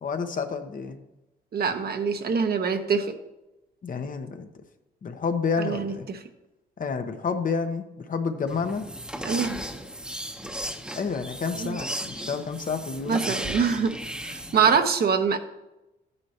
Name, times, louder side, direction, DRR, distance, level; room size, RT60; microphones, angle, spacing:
voice 1, 0.0-1.0 3.8-4.5 5.0-6.1 6.8-8.8 10.9-13.2, left 5 dB, 45° left, 6 dB, 1.1 m, -29 dB
voice 2, 1.5-3.1 5.6-6.2 9.2-9.6 11.6-11.8 13.1-13.9 14.2-15.4, right 6 dB, 50° right, 6 dB, 1.1 m, -24 dB
sound 1, 8.5-14.8, equal, 5° right, 1.0 m, -35 dB
12.5 x 9.7 x 3.0 m, 0.96 s
cardioid pair, 90°, 20 cm